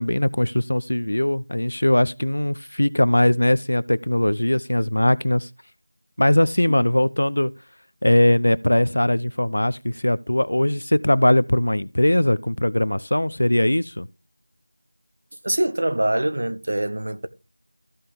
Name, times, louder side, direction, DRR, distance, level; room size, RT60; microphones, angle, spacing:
voice 1, 0.0-5.5 6.2-7.5 8.0-14.1, left 1 dB, 65° left, 0.5 m, -20 dB
voice 2, 15.4-17.3, right 1 dB, 40° right, 0.6 m, -24 dB
14.0 x 5.5 x 3.5 m
figure-of-eight pair, 180°, 0 cm